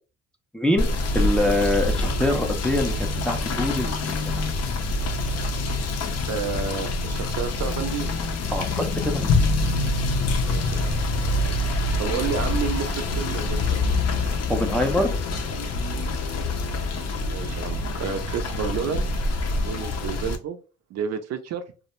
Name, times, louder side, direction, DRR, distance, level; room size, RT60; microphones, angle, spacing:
voice 1, 0.5-0.9 1.1-4.0 4.3-4.4 8.5-9.5 14.5-15.1, left 1 dB, 5° left, 3 dB, 0.4 m, -24 dB
Rain / Motor vehicle (road), 0.8-20.4, left 2 dB, 55° left, 0.5 m, -25 dB
voice 2, 6.3-8.1 10.4-10.9 12.0-13.8 17.2-19.1 19.6-20.6 20.9-21.6, right 7 dB, 60° right, 7 dB, 0.4 m, -30 dB
2.2 x 2.0 x 2.9 m, 0.34 s
cardioid pair, 90°, 30 cm